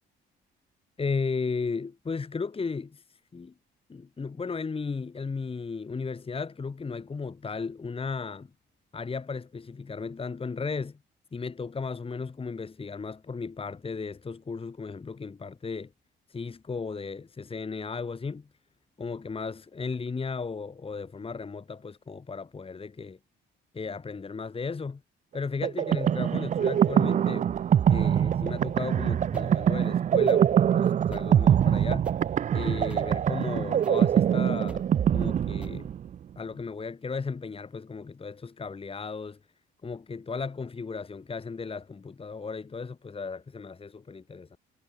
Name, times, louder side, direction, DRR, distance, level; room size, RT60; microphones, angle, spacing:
voice 1, 1.0-3.0 3.3-3.5 3.9-8.5 8.9-11.0 11.3-15.9 16.3-18.5 19.0-23.2 23.7-25.0 25.3-27.5 27.9-32.1 32.5-34.9 35.1-35.9 36.4-39.4 39.8-44.6, left 4 dB, 30° left, 1.7 m, -35 dB
sound 1, 25.6-36.2, right 9 dB, 40° right, 0.4 m, -24 dB
sound 2, 29.3-36.4, right 1 dB, 5° right, 4.7 m, -57 dB
cardioid pair, 90°, 20 cm